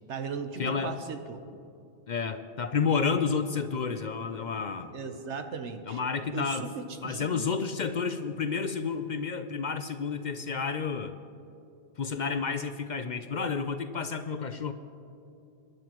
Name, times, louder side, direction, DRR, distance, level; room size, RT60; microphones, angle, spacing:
voice 1, 0.1-1.4 4.9-6.0 6.3-7.5, right 5 dB, 85° right, 7 dB, 1.3 m, -37 dB
voice 2, 0.6-1.0 2.1-4.9 5.9-6.6 7.0-11.1 12.0-14.7, left 5 dB, 50° left, 8 dB, 0.6 m, -30 dB
24.0 x 11.0 x 3.0 m, 2.7 s
omnidirectional pair, 1.1 m